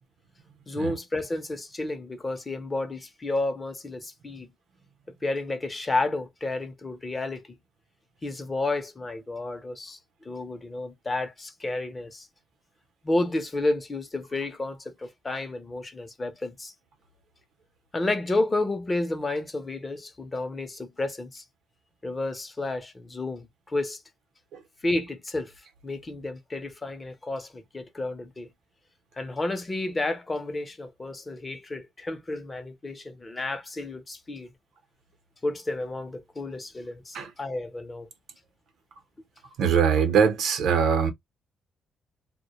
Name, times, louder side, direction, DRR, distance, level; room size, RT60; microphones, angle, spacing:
voice 1, 0.7-4.5 5.1-7.6 8.2-10.0 10.2-12.3 13.0-16.7 17.9-21.4 22.0-24.0 24.8-25.5 25.8-28.5 29.1-34.5 35.4-38.1, left 2 dB, 25° left, 0.6 m, -31 dB
voice 2, 39.6-41.1, right 7 dB, 75° right, 0.7 m, -22 dB
2.1 x 2.1 x 2.8 m
cardioid pair, 90°, 0 cm